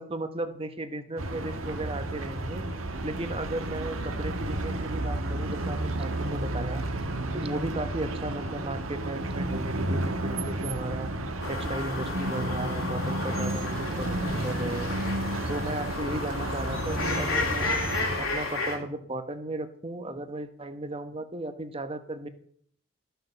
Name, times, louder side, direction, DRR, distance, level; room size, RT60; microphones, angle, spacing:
voice 1, 0.0-2.6 3.0-6.8 7.3-11.1 11.5-14.9 15.5-17.8 18.2-22.3, right 2 dB, 30° right, 9 dB, 1.0 m, -35 dB
sound 1, 1.2-18.2, right 1 dB, 85° right, 1.5 m, -32 dB
sound 2, 11.4-18.8, left 3 dB, 80° left, 3.3 m, -33 dB
sound 3, 18.0-18.8, left 1 dB, 60° left, 3.2 m, -48 dB
13.5 x 6.8 x 6.8 m, 0.62 s
head